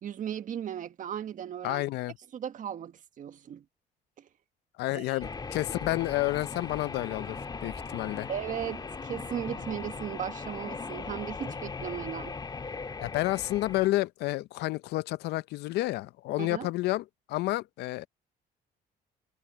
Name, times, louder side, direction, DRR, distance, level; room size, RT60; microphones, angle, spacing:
voice 1, 0.0-1.8 2.3-3.6 4.2-4.3 4.9-5.2 8.3-12.4 16.4-16.7, right 9 dB, 50° right, 1.5 m, -36 dB
voice 2, 1.6-2.1 4.8-8.3 13.0-18.1, left 18 dB, 80° left, 0.6 m, -30 dB
sound 1, 5.2-13.9, left 4 dB, 25° left, 1.8 m, -39 dB
cardioid pair, 110°, 17 cm